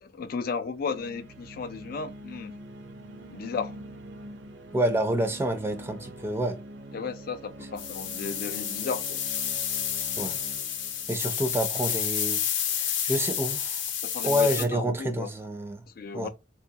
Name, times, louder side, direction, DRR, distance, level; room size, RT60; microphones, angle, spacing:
voice 1, 0.0-2.6 3.3-3.7 6.9-9.2 14.0-15.3 16.0-16.3, left 5 dB, 50° left, 0.3 m, -34 dB
sound 1, 0.7-12.3, right 1 dB, 70° right, 0.5 m, -45 dB
voice 2, 4.7-6.6 10.2-10.4 11.1-12.4 12.7-13.8 14.2-15.8 16.1-16.3, equal, 15° right, 0.4 m, -28 dB
sound 2, 7.8-14.7, left 9 dB, 85° left, 0.7 m, -30 dB
4.4 x 2.3 x 2.8 m
head